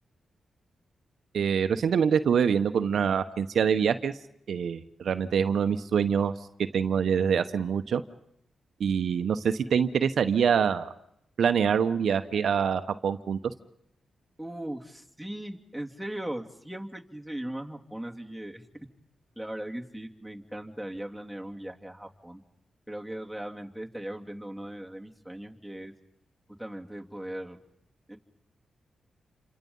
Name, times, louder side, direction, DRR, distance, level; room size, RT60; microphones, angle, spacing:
voice 1, 1.3-4.1 4.5-6.3 6.6-8.0 8.8-10.9 11.4-13.4, right 7 dB, 75° right, 10 dB, 1.0 m, -25 dB
voice 2, 14.4-18.6 19.4-22.4 22.9-25.9 26.6-27.6 28.1-28.2, right 1 dB, ahead, 1 dB, 2.8 m, -38 dB
28.5 x 25.5 x 5.5 m, 0.76 s
cardioid pair, 60°, 0 cm